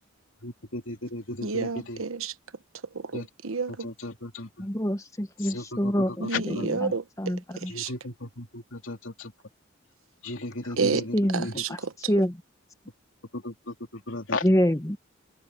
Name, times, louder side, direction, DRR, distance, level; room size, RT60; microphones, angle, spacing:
voice 1, 0.4-2.0 3.1-3.2 3.8-4.7 5.4-6.7 7.7-9.3 10.2-11.0 11.4-11.5 13.3-14.5, left 2 dB, 70° left, 3.2 m, -35 dB
voice 2, 1.4-2.4 2.8-3.9 6.2-7.9 10.8-12.1, right 4 dB, 85° right, 1.1 m, -30 dB
voice 3, 4.6-6.9 7.2-7.7 11.1-11.4 12.1-12.3 14.4-15.0, equal, 15° left, 1.0 m, -26 dB
open air
head